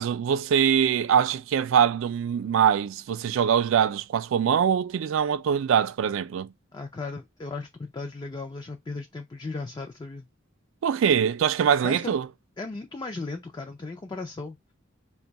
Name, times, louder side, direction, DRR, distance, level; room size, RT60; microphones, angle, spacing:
voice 1, 0.0-6.5 10.8-12.3, right 8 dB, 70° right, 0.3 m, -23 dB
voice 2, 6.7-10.3 11.8-12.2 12.6-14.7, left 3 dB, 20° left, 0.3 m, -36 dB
2.6 x 2.3 x 3.9 m
head